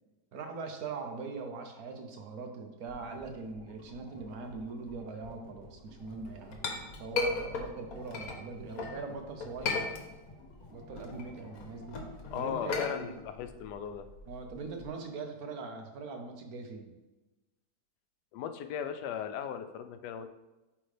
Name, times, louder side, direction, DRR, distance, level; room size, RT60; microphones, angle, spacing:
voice 1, 0.3-6.6 7.0-9.8 10.7-12.0 12.3-13.1 14.3-17.0, right 4 dB, 65° right, 4 dB, 1.2 m, -41 dB
sound 1, 2.9-12.1, left 2 dB, 35° left, 1.3 m, -52 dB
Chink clink, 6.1-9.0 9.4-10.4 10.8-14.9, left 3 dB, 65° left, 1.3 m, -36 dB
voice 2, 12.3-14.1 18.3-20.3, left 8 dB, 80° left, 8 dB, 1.1 m, -37 dB
8.5 x 3.6 x 3.3 m, 1.1 s
omnidirectional pair, 1.8 m